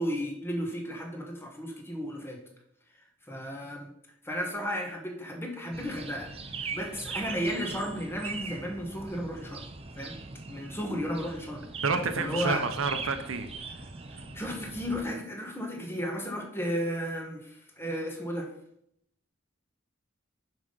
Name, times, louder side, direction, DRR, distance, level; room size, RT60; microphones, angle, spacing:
voice 1, 0.0-2.4 3.3-3.9 4.2-9.6 10.0-10.2 10.5-11.6 12.2-12.6 14.3-18.5, equal, 10° left, 1 dB, 1.4 m, -34 dB
sound 1, 5.7-15.0, right 4 dB, 30° right, 0.6 m, -40 dB
voice 2, 11.8-13.8, right 4 dB, 85° right, 8 dB, 0.8 m, -30 dB
6.2 x 5.3 x 5.3 m, 0.73 s
head